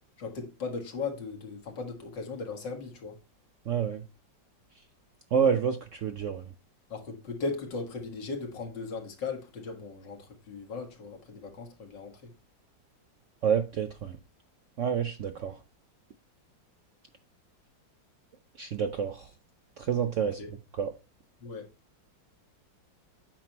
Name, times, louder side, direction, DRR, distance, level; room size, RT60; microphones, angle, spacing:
voice 1, 0.2-3.1 6.9-12.3 20.2-20.5 21.4-21.7, left 4 dB, 70° left, 2.4 m, -37 dB
voice 2, 3.7-4.0 5.3-6.4 13.4-14.2 14.8-15.5 18.6-19.2 19.9-20.4 20.8-20.9, right 7 dB, 60° right, 0.8 m, -28 dB
8.7 x 5.9 x 2.9 m
omnidirectional pair, 2.0 m